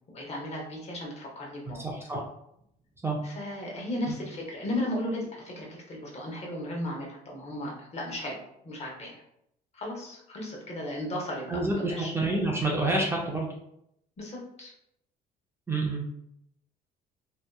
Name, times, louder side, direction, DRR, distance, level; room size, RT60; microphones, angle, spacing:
voice 1, 0.1-1.9 3.2-9.2 9.7-12.1 14.2-14.7, left 1 dB, 40° left, -1 dB, 0.9 m, -35 dB
voice 2, 1.7-2.2 3.0-3.2 4.1-4.2 11.5-13.5 15.7-16.0, right 2 dB, 15° right, -2 dB, 0.5 m, -28 dB
2.7 x 2.2 x 2.2 m, 0.75 s
cardioid pair, 110°, 17 cm